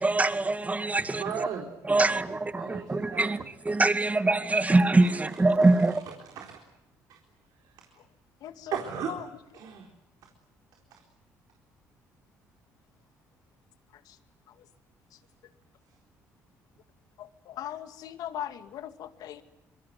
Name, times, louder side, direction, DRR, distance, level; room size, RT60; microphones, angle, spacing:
voice 1, 0.0-1.5 1.9-6.0, right 2 dB, 20° right, 2.1 m, -24 dB
voice 2, 1.2-1.7 1.9-3.5 5.0-5.1 5.5-6.0 6.4-6.6 7.1-7.2 7.6-8.0 8.7-9.1 9.5-9.9 10.9-11.0, right 8 dB, 75° right, 4.1 m, -37 dB
voice 3, 8.4-8.8 9.1-9.3 14.1-14.2 14.5-14.6 17.2-19.4, left 11 dB, 75° left, 2.3 m, -39 dB
26.5 x 23.0 x 9.5 m
supercardioid pair, 65°, 7 cm